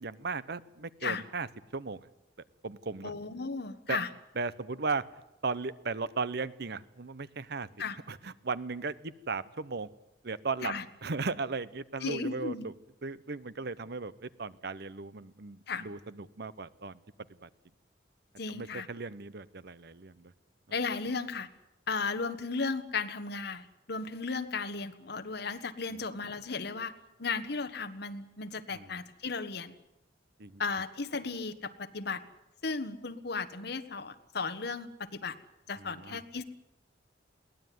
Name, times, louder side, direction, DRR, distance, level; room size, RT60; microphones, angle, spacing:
voice 1, 0.0-1.5 1.7-2.1 2.6-3.1 3.9-4.0 4.4-5.0 5.4-7.7 8.1-9.9 10.2-10.7 11.0-12.7 13.0-17.0 17.4-17.5 18.5-20.3 28.7-28.9 30.4-30.6 35.8-36.2, right 4 dB, 65° right, 17 dB, 0.9 m, -36 dB
voice 2, 3.0-4.1 7.8-8.0 10.6-10.8 12.0-12.7 15.7-15.8 18.4-18.9 20.7-21.5 21.9-26.9 27.2-29.7 30.6-32.2 32.6-35.4 35.7-36.4, left 4 dB, 65° left, 8 dB, 1.5 m, -35 dB
22.0 x 17.0 x 9.5 m, 0.91 s
head